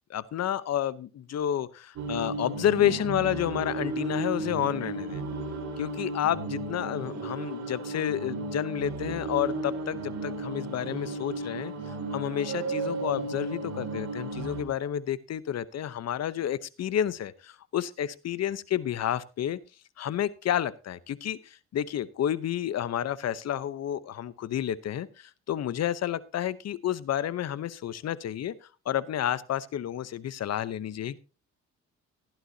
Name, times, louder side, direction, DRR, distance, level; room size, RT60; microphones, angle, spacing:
voice 1, 0.1-5.2 5.8-11.7 12.1-19.6 20.0-28.5 28.9-31.2, left 10 dB, 60° left, 17 dB, 0.8 m, -30 dB
sound 1, 2.0-14.6, right 2 dB, 60° right, 3.2 m, -34 dB
16.0 x 11.5 x 2.7 m, 0.32 s
cardioid pair, 90°, 30 cm